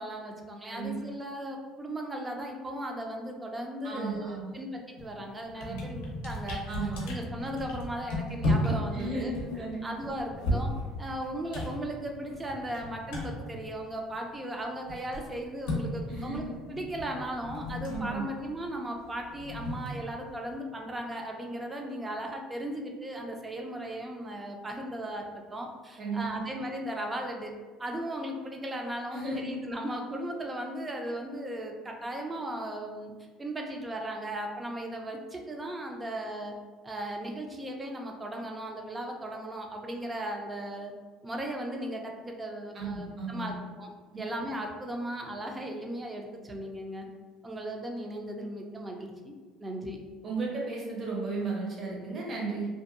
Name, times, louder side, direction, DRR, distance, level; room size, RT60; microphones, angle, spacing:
voice 1, 0.0-9.3 9.8-10.7 11.0-25.2 25.5-27.5 27.8-33.1 33.4-36.5 36.8-40.9 41.2-43.9 44.2-47.1 47.4-49.3 49.6-50.0, right 1 dB, 20° right, 2 dB, 0.5 m, -37 dB
voice 2, 3.8-4.5 5.6-5.8 6.7-7.2 8.9-9.9 16.1-16.4 17.9-18.3 26.0-26.5 29.1-29.6 42.7-43.5 50.2-52.7, right 3 dB, 40° right, -3 dB, 0.8 m, -34 dB
sound 1, 5.0-5.2 5.5-14.3 14.6-20.6, left 1 dB, 85° left, 0.5 m, -35 dB
2.6 x 2.2 x 2.4 m, 1.4 s
supercardioid pair, 85°, 0 cm